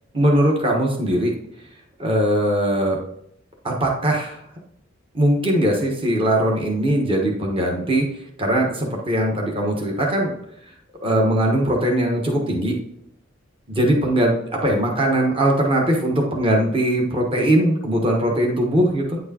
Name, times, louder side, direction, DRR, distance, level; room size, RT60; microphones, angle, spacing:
voice 1, 0.1-1.3 2.0-3.0 3.6-4.4 5.1-8.1 8.4-10.3 11.0-12.7 13.7-19.2, right 1 dB, 30° right, -1 dB, 1.3 m, -20 dB
9.2 x 4.6 x 2.9 m, 0.73 s
head